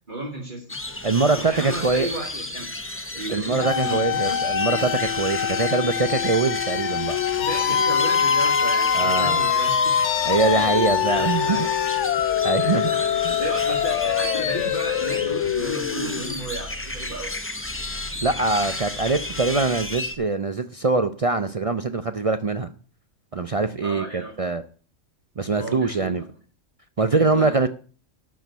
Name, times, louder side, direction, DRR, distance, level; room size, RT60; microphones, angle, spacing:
voice 1, 0.1-0.7 1.3-2.7 3.1-4.4 7.4-9.8 10.5-11.6 12.6-17.4 23.8-24.3 25.5-26.1 27.0-27.5, right 2 dB, 35° right, -3 dB, 2.3 m, -33 dB
sound 1, 0.7-20.1, left 2 dB, 10° left, 0.7 m, -33 dB
voice 2, 1.0-2.1 3.3-7.2 8.9-9.4 10.3-11.6 12.4-12.8 13.2-13.3 18.2-22.7 23.3-24.6 25.4-26.2 27.0-27.7, right 3 dB, 55° right, 10 dB, 0.4 m, -23 dB
sound 2, 3.6-16.4, left 8 dB, 65° left, 1.0 m, -24 dB
12.0 x 4.6 x 8.1 m, 0.40 s
omnidirectional pair, 1.4 m